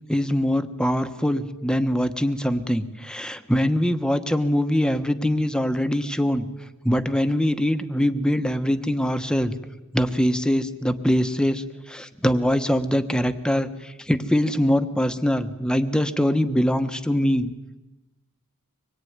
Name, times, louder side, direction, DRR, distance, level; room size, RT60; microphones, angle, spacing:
voice 1, 0.1-6.5 6.8-9.5 9.9-17.5, equal, 5° left, 9 dB, 1.2 m, -23 dB
25.0 x 21.5 x 9.6 m, 1.1 s
head